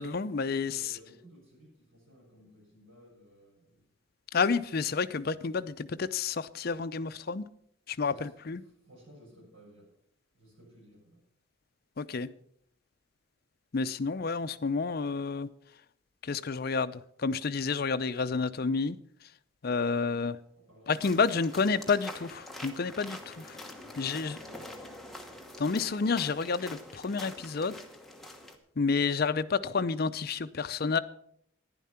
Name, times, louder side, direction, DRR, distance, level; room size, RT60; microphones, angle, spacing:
voice 1, 0.0-0.9 4.3-7.4 7.9-8.6 12.0-12.3 13.7-15.5 16.2-19.0 19.6-20.3 20.9-23.6 24.0-24.4 25.6-27.7 28.8-31.0, left 4 dB, 50° left, 12 dB, 0.5 m, -30 dB
voice 2, 0.7-3.9 5.1-5.5 8.0-8.3 8.6-9.9 10.3-11.2 19.6-20.3 20.6-21.9 23.7-24.7 25.9-26.1, equal, 75° right, -2 dB, 6.4 m, -57 dB
sound 1, 20.9-28.6, left 1 dB, ahead, 1.1 m, -45 dB
11.0 x 10.5 x 5.7 m, 0.69 s
head